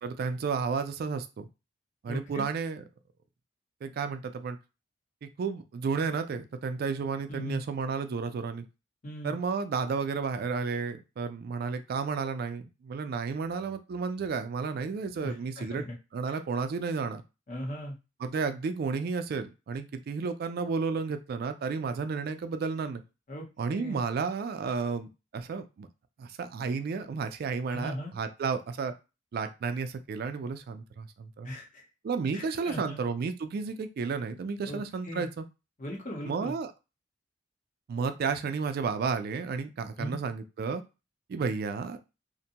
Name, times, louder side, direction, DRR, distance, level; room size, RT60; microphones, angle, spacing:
voice 1, 0.0-1.5 2.0-2.8 3.8-4.6 5.2-8.6 9.2-15.9 16.1-17.2 18.2-23.0 23.6-25.9 26.2-28.9 29.3-31.5 32.0-35.4 36.2-36.7 37.9-40.8 41.3-42.0, right 5 dB, 55° right, 9 dB, 0.3 m, -32 dB
voice 2, 2.1-2.4 7.3-7.6 9.0-9.3 15.2-16.0 17.5-18.0 23.3-24.0 27.7-28.1 31.4-31.8 32.3-33.0 34.6-35.3 35.8-36.5 40.0-40.2, equal, 40° left, 0 dB, 0.8 m, -38 dB
2.5 x 2.2 x 2.8 m, 0.28 s
head